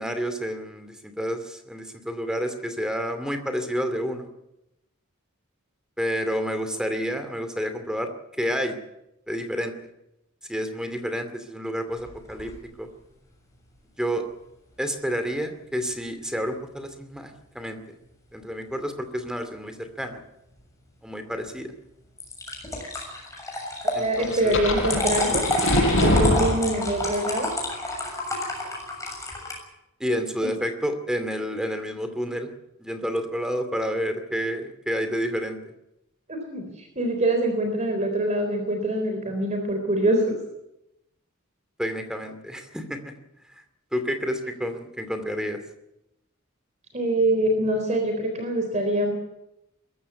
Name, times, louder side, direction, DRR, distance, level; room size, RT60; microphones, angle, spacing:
voice 1, 0.0-4.3 6.0-8.1 8.4-8.8 9.3-9.7 10.5-12.5 12.8-12.9 14.0-14.2 14.8-17.8 18.3-20.2 21.0-21.7 23.9-24.5 30.0-32.5 32.8-35.6 41.8-43.1 43.9-45.6, equal, 5° right, 8 dB, 2.4 m, -29 dB
sound 1, 11.9-12.6 22.2-29.6, left 2 dB, 15° left, 6.8 m, -30 dB
voice 2, 23.8-25.5 26.0-27.5 36.3-40.2 46.9-49.1, right 1 dB, 35° right, 4 dB, 3.9 m, -24 dB
sound 2, 24.2-27.1, left 1 dB, 65° left, 6.5 m, -23 dB
22.0 x 15.0 x 9.6 m, 0.87 s
head